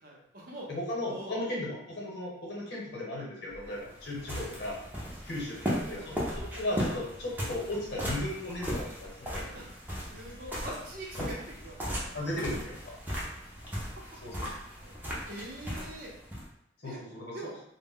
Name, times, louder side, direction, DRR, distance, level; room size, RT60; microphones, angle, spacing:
voice 1, 0.0-0.7 1.1-1.6 3.6-3.8 5.7-6.5 9.2-12.2 13.5-14.2 14.7-16.2 16.8-17.0 17.3-17.6, right 1 dB, 50° right, -2 dB, 0.7 m, -45 dB
voice 2, 0.7-4.8 5.3-6.1 6.6-9.5 11.2-11.3 12.1-12.9 14.2-14.3 16.8-17.5, left 1 dB, 60° left, -4 dB, 0.9 m, -36 dB
sound 1, 3.5-16.5, equal, 10° right, 0.5 m, -37 dB
2.1 x 2.1 x 3.5 m, 0.73 s
head